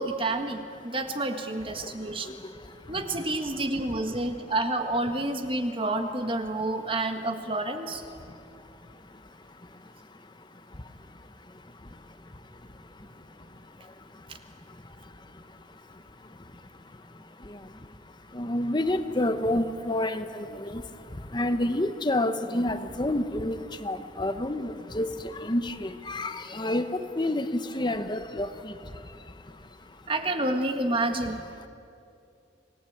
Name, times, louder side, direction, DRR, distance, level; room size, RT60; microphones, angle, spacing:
voice 1, 0.0-2.4 2.9-8.0 14.3-14.4 30.1-31.4, right 2 dB, 30° right, 6 dB, 1.7 m, -29 dB
voice 2, 1.7-3.2 3.8-4.4 6.6-6.7 8.1-30.1 31.6-31.7, left 1 dB, 25° left, 9 dB, 1.0 m, -32 dB
28.0 x 18.5 x 8.8 m, 2.7 s
head